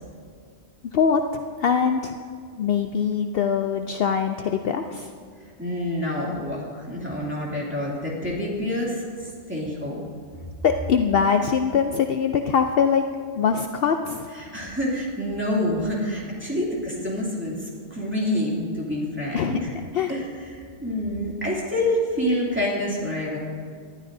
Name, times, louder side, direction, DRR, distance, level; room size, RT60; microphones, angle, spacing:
voice 1, 1.6-2.2 2.6-5.1 10.6-13.0 13.4-14.3 19.3-19.6 19.9-20.1, left 7 dB, 65° left, 6 dB, 0.7 m, -22 dB
voice 2, 5.6-10.1 14.3-19.7 20.1-23.4, left 1 dB, 10° right, -5 dB, 2.6 m, -27 dB
19.0 x 12.0 x 2.7 m, 2.1 s
omnidirectional pair, 1.2 m